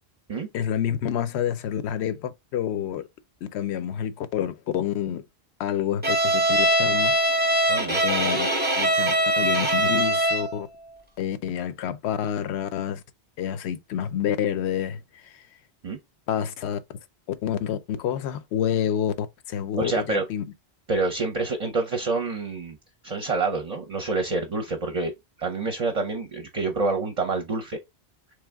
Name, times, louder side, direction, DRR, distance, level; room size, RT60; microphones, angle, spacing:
voice 1, 0.5-3.1 3.4-5.2 5.6-7.2 8.0-8.5 8.8-10.7 11.2-13.0 13.4-15.3 16.3-16.8 17.4-20.4, left 9 dB, 80° left, 0.9 m, -28 dB
Bowed string instrument, 6.0-10.6, right 1 dB, 10° right, 0.8 m, -22 dB
voice 2, 7.7-8.0 15.8-16.0 19.8-20.2 20.9-22.8 23.0-25.1 25.4-27.8, right 3 dB, 40° right, 0.6 m, -27 dB
3.4 x 3.3 x 3.4 m
omnidirectional pair, 1.1 m